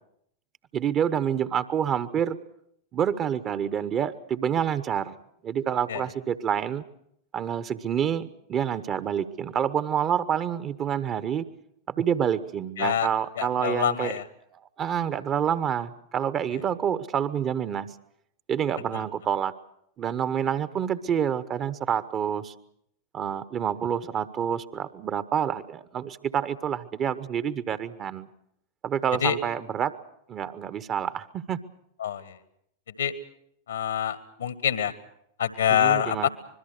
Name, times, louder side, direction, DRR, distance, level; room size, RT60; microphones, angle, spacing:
voice 1, 0.7-2.4 2.9-5.1 5.4-6.8 7.3-11.5 11.9-14.1 14.5-17.9 18.5-19.5 20.0-22.5 23.1-28.3 28.8-30.0 30.3-31.6 35.7-36.3, right 8 dB, 30° right, 14 dB, 1.0 m, -28 dB
voice 2, 12.8-13.1 13.4-14.2 18.9-19.0 29.2-29.4 32.0-32.4 33.0-33.1 33.7-34.9 35.4-36.3, left 9 dB, 70° left, 14 dB, 1.7 m, -26 dB
25.5 x 22.0 x 6.5 m, 0.73 s
figure-of-eight pair, 90°, 0 cm